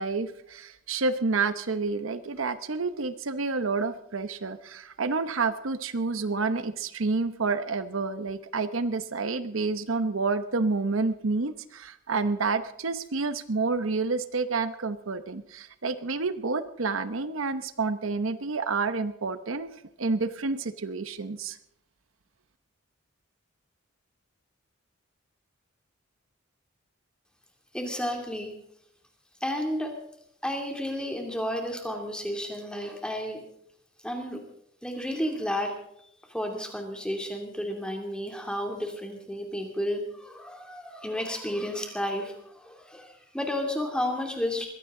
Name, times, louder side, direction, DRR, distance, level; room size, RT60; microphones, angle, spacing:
voice 1, 0.0-19.7 20.0-21.6, right 4 dB, 75° right, 11 dB, 0.9 m, -29 dB
voice 2, 27.7-28.5 29.4-29.9 30.4-33.4 34.0-34.4 34.8-35.7 36.3-44.7, left 1 dB, 5° left, 2 dB, 2.7 m, -32 dB
22.0 x 16.0 x 3.8 m, 0.74 s
head